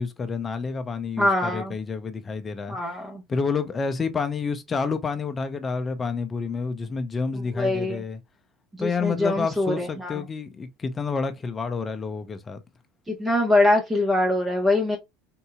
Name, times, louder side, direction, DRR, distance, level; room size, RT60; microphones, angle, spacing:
voice 1, 0.0-2.8 3.3-8.2 8.8-12.6, left 5 dB, 25° left, 0.7 m, -29 dB
voice 2, 1.2-1.7 2.7-3.2 7.3-8.0 8.8-10.2 13.1-15.0, left 2 dB, 15° right, 1.2 m, -23 dB
3.8 x 2.7 x 2.4 m
hypercardioid pair, 75°, 0 cm